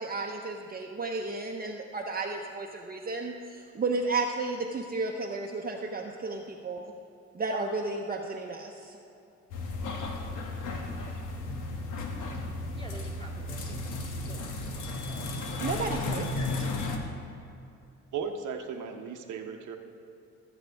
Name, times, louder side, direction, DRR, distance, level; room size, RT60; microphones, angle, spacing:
voice 1, 0.0-6.9 7.3-9.0 15.6-16.5, right 3 dB, 30° right, 1 dB, 0.8 m, -33 dB
sound 1, 9.5-17.0, left 2 dB, 90° left, 1.2 m, -34 dB
voice 2, 12.8-13.9 14.2-16.0, equal, 20° left, -2 dB, 2.3 m, -49 dB
voice 3, 18.1-19.8, right 6 dB, 80° right, 4 dB, 1.0 m, -36 dB
16.5 x 8.1 x 3.5 m, 2.6 s
cardioid pair, 90°, 30 cm